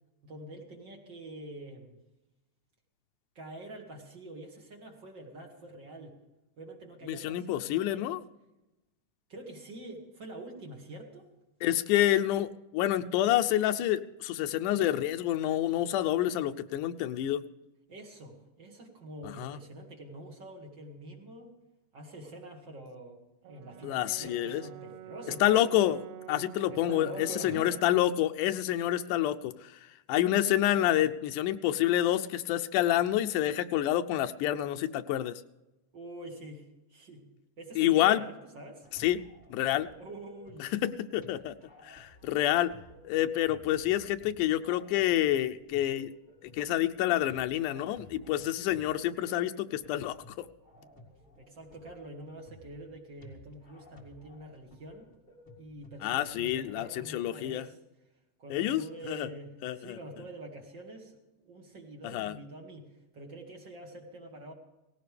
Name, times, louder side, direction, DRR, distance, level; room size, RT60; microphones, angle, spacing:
voice 1, 0.2-2.0 3.4-6.2 6.6-8.1 9.3-11.3 17.9-21.6 21.9-25.4 26.7-27.8 28.4-28.6 35.9-37.3 37.6-38.9 40.0-40.7 51.4-55.1 55.6-57.8 58.4-64.5, right 1 dB, 40° right, 0 dB, 2.3 m, -46 dB
voice 2, 7.1-8.2 11.6-17.4 19.2-19.6 23.8-24.6 25.4-29.7 30.1-35.4 37.8-38.2 39.0-39.2 39.5-39.9 40.6-41.5 41.8-42.7 43.1-46.1 46.4-50.5 56.0-57.7 58.5-59.3 59.6-60.0 62.0-62.3, left 13 dB, 80° left, 9 dB, 2.1 m, -28 dB
Brass instrument, 23.4-27.7, right 13 dB, 85° right, 1.4 m, -47 dB
sound 1, 38.8-56.8, left 1 dB, 20° left, 1.7 m, -56 dB
17.5 x 17.0 x 3.4 m, 0.99 s
omnidirectional pair, 3.7 m